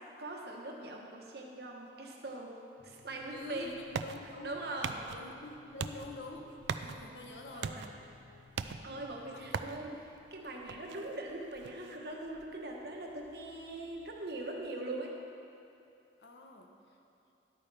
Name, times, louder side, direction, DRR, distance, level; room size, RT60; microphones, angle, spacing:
voice 1, 0.2-2.5 2.8-3.7 4.4-5.1 7.5-7.9 8.8-15.2, right 2 dB, 65° right, 0 dB, 1.1 m, -41 dB
sound 1, 2.8-9.8, left 4 dB, 55° left, 0.7 m, -60 dB
sound 2, 3.2-14.7, right 6 dB, 85° right, 0.4 m, -44 dB
voice 2, 3.3-4.5 5.1-6.5 6.8-7.8 9.3-9.7 16.2-17.0, left 2 dB, 75° left, 2 dB, 1.0 m, -47 dB
11.5 x 8.5 x 3.4 m, 2.8 s
head